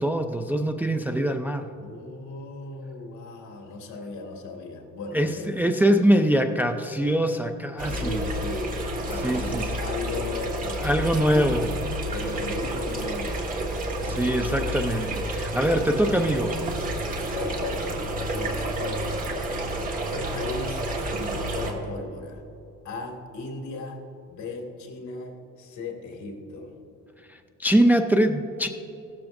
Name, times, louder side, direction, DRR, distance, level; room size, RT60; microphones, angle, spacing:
voice 1, 0.0-1.7 5.1-8.2 9.2-9.6 10.8-11.8 14.0-16.6 27.6-28.7, right 1 dB, 5° right, 5 dB, 0.4 m, -23 dB
voice 2, 1.8-5.5 8.0-8.7 9.1-11.2 12.1-13.4 17.3-19.3 20.1-22.4 22.8-24.0 24.3-26.7, left 3 dB, 70° left, 1 dB, 2.2 m, -36 dB
sound 1, 7.8-21.7, right 1 dB, 25° right, 1.5 m, -30 dB
16.0 x 13.0 x 2.6 m, 2.9 s
cardioid pair, 150°, 30 cm